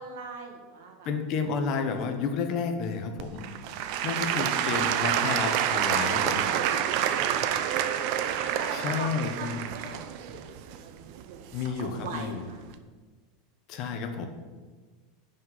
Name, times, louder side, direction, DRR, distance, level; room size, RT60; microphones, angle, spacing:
voice 1, 0.0-1.1 3.6-4.2 6.3-6.7 8.6-12.6, right 4 dB, 70° right, 3 dB, 1.9 m, -42 dB
voice 2, 1.0-3.4 4.0-6.5 8.3-9.6 11.5-12.4 13.7-14.3, left 5 dB, 40° left, 6 dB, 1.0 m, -31 dB
Applause / Crowd, 3.2-12.1 12.7-12.8, right 10 dB, 50° right, 0.6 m, -28 dB
9.4 x 5.4 x 5.7 m, 1.4 s
supercardioid pair, 165°, 0 cm